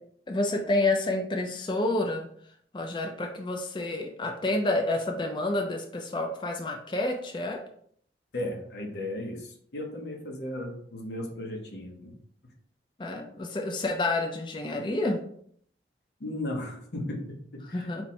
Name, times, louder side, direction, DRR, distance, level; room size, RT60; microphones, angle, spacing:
voice 1, 0.3-2.3 2.7-7.6 13.0-15.2 17.7-18.0, left 2 dB, 25° left, 2 dB, 0.4 m, -29 dB
voice 2, 8.3-12.2 16.2-17.9, left 1 dB, 70° left, 1 dB, 0.8 m, -36 dB
4.2 x 2.1 x 4.2 m, 0.63 s
head